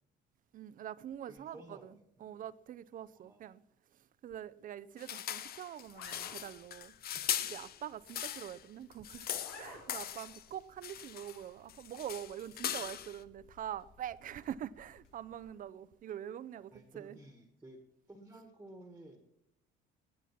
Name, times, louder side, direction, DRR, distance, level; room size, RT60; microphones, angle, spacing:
voice 1, 0.5-3.6 4.0-7.0 7.5-17.2, right 10 dB, 45° right, 0.6 m, -45 dB
voice 2, 1.3-2.4 3.1-3.5 7.0-7.2 10.2-10.3 16.7-17.8 18.1-19.2, right 1 dB, 10° right, 1.6 m, -54 dB
sound 1, 5.0-8.6 8.9-10.5 10.8-11.4 11.7-13.2, left 10 dB, 50° left, 0.9 m, -40 dB
sound 2, 5.8-15.6, left 4 dB, 85° left, 5.7 m, -59 dB
18.0 x 9.7 x 5.9 m
cardioid pair, 140°, 20 cm